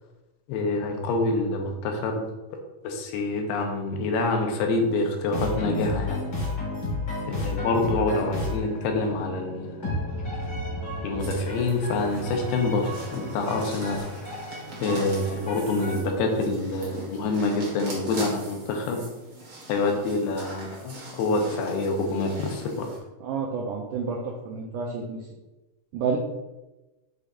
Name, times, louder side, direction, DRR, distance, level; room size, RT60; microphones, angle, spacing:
voice 1, 0.5-2.2 2.8-6.2 7.3-10.0 11.0-14.0 14.8-19.0 19.7-22.9, left 2 dB, 90° left, 3 dB, 2.8 m, -26 dB
sound 1, 5.3-16.0, left 2 dB, 40° left, 1.3 m, -33 dB
sound 2, 11.2-23.0, right 2 dB, 50° right, 1.2 m, -42 dB
voice 2, 23.2-25.2 25.9-26.2, right 5 dB, 85° right, -2 dB, 1.8 m, -29 dB
6.7 x 6.1 x 2.5 m, 1.1 s
omnidirectional pair, 4.5 m